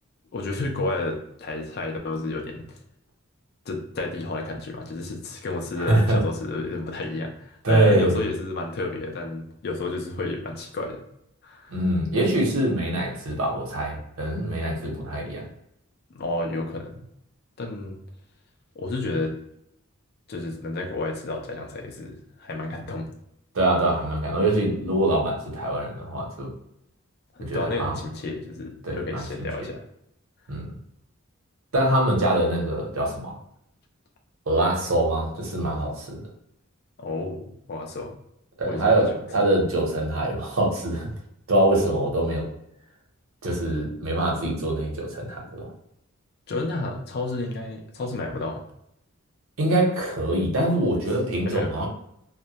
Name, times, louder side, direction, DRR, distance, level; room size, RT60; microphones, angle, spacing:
voice 1, 0.3-2.8 3.7-11.0 11.4-11.7 16.1-17.0 17.6-18.0 18.8-19.3 20.3-23.1 27.3-29.8 37.0-38.1 38.6-39.0 46.5-48.6 51.5-51.7, left 2 dB, 45° left, 2 dB, 0.4 m, -31 dB
voice 2, 5.8-6.2 7.6-8.2 11.7-15.5 23.5-26.5 27.4-28.0 28.8-29.5 30.5-30.7 31.7-33.4 34.5-36.2 38.6-41.1 41.5-42.5 43.4-45.7 49.6-51.9, right 1 dB, 65° right, -1 dB, 0.8 m, -24 dB
2.1 x 2.1 x 2.7 m, 0.76 s
head